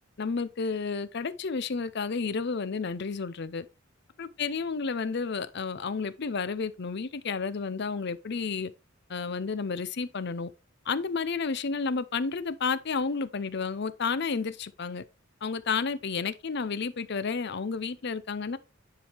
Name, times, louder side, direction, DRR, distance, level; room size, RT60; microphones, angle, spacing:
voice 1, 0.2-3.7 4.2-8.7 9.1-10.5 10.9-15.0 15.4-18.6, left 5 dB, 55° left, 0.6 m, -31 dB
10.0 x 4.8 x 3.4 m
head